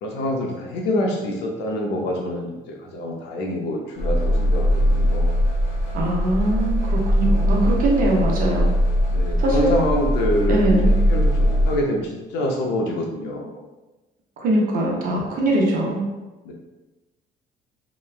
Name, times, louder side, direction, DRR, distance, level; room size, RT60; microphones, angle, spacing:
voice 1, 0.0-5.4 9.1-13.6 16.4-16.5, left 1 dB, 85° left, 0 dB, 0.6 m, -26 dB
sound 1, 4.0-11.8, equal, 40° left, 0.9 m, -20 dB
voice 2, 5.9-8.7 9.4-9.7 10.5-11.0 14.4-16.0, right 1 dB, 55° right, -2 dB, 0.7 m, -22 dB
2.9 x 2.2 x 2.4 m, 1.1 s
cardioid pair, 110°, 17 cm